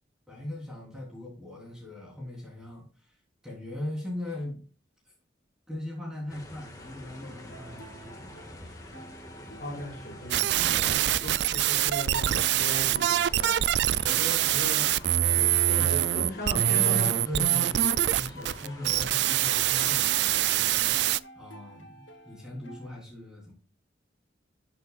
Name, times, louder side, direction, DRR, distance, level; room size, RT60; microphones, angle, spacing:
voice 1, 0.3-3.2 3.4-4.6 5.7-8.9 15.3-15.6 17.3-23.5, left 1 dB, 5° right, -3 dB, 3.5 m, -40 dB
sound 1, 6.3-20.7, left 1 dB, 20° left, 1.7 m, -48 dB
sound 2, 6.8-23.0, equal, 80° left, 1.8 m, -50 dB
voice 2, 9.6-14.9 15.8-17.2, equal, 50° left, -1 dB, 5.5 m, -38 dB
sound 3, 10.3-21.2, right 12 dB, 65° right, 0.3 m, -24 dB
13.5 x 7.0 x 2.4 m, 0.37 s
head